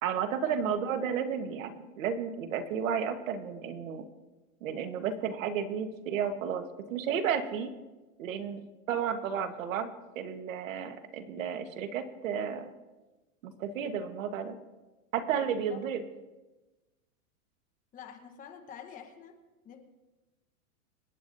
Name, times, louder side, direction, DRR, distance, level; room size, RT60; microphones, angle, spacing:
voice 1, 0.0-4.0 4.6-7.7 8.2-8.6 8.9-12.7 13.4-14.5 15.1-16.0, right 7 dB, 65° right, 8 dB, 1.4 m, -32 dB
voice 2, 15.7-16.0 17.9-19.3 19.6-19.8, left 8 dB, 20° left, 4 dB, 1.1 m, -47 dB
26.5 x 9.1 x 2.7 m, 1.1 s
supercardioid pair, 160°, 42 cm